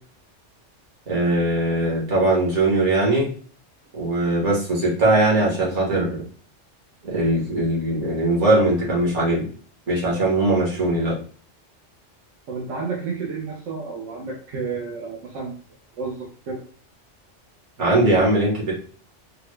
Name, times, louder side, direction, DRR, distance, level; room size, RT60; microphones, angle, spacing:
voice 1, 1.1-3.3 3.9-6.2 7.0-9.5 9.9-11.2 17.8-18.7, right 2 dB, 70° right, -4 dB, 1.8 m, -20 dB
voice 2, 12.5-15.5 15.9-16.6, right 4 dB, 90° right, -2 dB, 1.1 m, -31 dB
4.0 x 2.2 x 3.1 m, 0.43 s
omnidirectional pair, 1.2 m